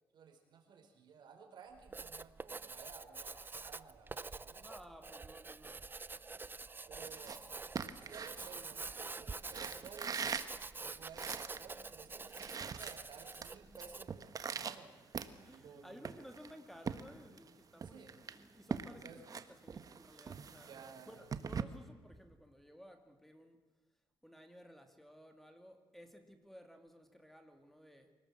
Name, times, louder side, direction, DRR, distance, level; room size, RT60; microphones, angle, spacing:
voice 1, 0.1-4.7 6.9-7.4 8.0-10.2 10.8-16.0 17.8-18.2 18.9-19.2 20.5-21.2, right 6 dB, 65° right, 3 dB, 4.8 m, -56 dB
Writing, 1.7-14.2, right 4 dB, 25° right, 0.6 m, -47 dB
voice 2, 4.6-5.9 15.0-20.7 21.1-23.6 24.2-28.2, equal, 5° left, 6 dB, 2.6 m, -56 dB
sound 1, 7.0-9.0 9.5-11.7 12.0-12.1 12.3-13.5 13.8-15.7 16.0-17.5 17.8-21.6, right 6 dB, 45° right, 1.4 m, -42 dB
25.0 x 18.5 x 7.8 m, 1.2 s
cardioid pair, 90°, 8 cm